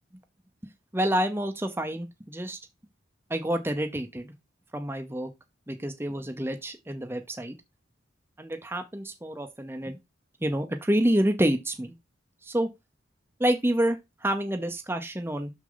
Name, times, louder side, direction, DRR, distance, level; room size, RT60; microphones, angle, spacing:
voice 1, 0.9-2.6 3.3-4.3 4.7-5.3 5.7-7.5 8.4-10.0 10.4-11.9 12.4-12.7 13.4-15.5, right 1 dB, 10° right, 0.8 m, -28 dB
6.4 x 6.2 x 4.0 m
head